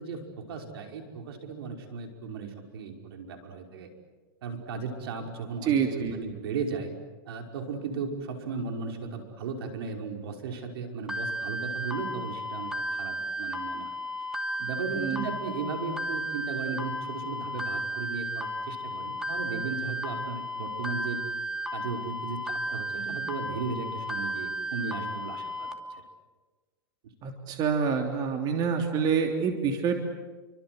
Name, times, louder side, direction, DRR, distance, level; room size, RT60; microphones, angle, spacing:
voice 1, 0.0-3.9 4.4-6.9 7.2-14.0 14.6-21.2 21.7-25.7, right 4 dB, 75° right, 4 dB, 5.6 m, -36 dB
voice 2, 5.6-6.2 15.0-15.3 27.2-29.9, right 6 dB, 30° right, 4 dB, 3.2 m, -27 dB
sound 1, 11.1-25.7, equal, 5° right, 2.5 m, -34 dB
30.0 x 25.0 x 8.0 m, 1.3 s
supercardioid pair, 145°, 13 cm